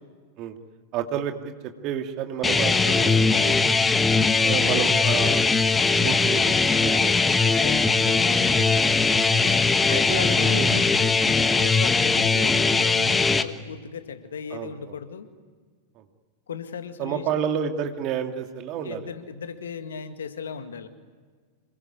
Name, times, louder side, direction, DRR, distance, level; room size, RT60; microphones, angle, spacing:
voice 1, 0.9-3.8 4.4-5.4 5.9-6.5 6.8-7.3 9.4-9.5 9.9-10.7 12.3-12.5 14.5-15.0 16.0-16.1 17.0-19.1, right 9 dB, 40° right, 5 dB, 2.4 m, -30 dB
sound 1, 2.4-13.4, left 4 dB, 15° left, 1.3 m, -20 dB
voice 2, 7.4-8.8 9.9-15.3 16.5-17.2 18.8-20.9, left 6 dB, 65° left, 9 dB, 2.0 m, -36 dB
27.0 x 22.0 x 9.8 m, 1.5 s
figure-of-eight pair, 90°, 0 cm